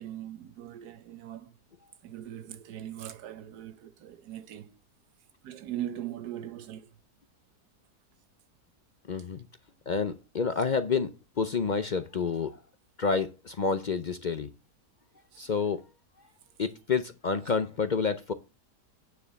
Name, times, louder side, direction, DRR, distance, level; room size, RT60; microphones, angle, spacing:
voice 1, 0.0-1.6 2.0-4.8 5.4-6.9 15.3-15.5, right 11 dB, 80° right, 1.4 m, -40 dB
voice 2, 9.1-9.4 9.9-12.6 13.0-14.5 15.4-15.8 16.6-18.3, left 5 dB, 55° left, 0.5 m, -29 dB
9.4 x 4.8 x 6.9 m
omnidirectional pair, 1.7 m